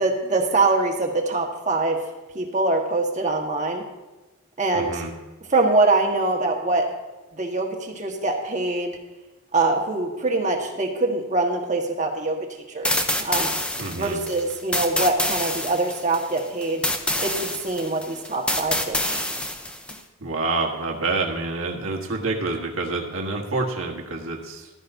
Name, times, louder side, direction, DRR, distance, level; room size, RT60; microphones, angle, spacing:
voice 1, 0.0-2.0 2.3-3.8 4.6-5.0 5.5-6.9 7.3-8.9 9.5-12.4 12.7-13.5 14.0-16.9 17.2-19.3, right 2 dB, 35° right, 1 dB, 1.5 m, -24 dB
voice 2, 4.7-5.1 13.8-14.2 20.2-24.7, right 3 dB, 75° right, 0 dB, 1.5 m, -27 dB
sound 1, 12.8-20.0, left 1 dB, 5° left, 0.6 m, -27 dB
15.0 x 12.5 x 2.7 m, 1.1 s
head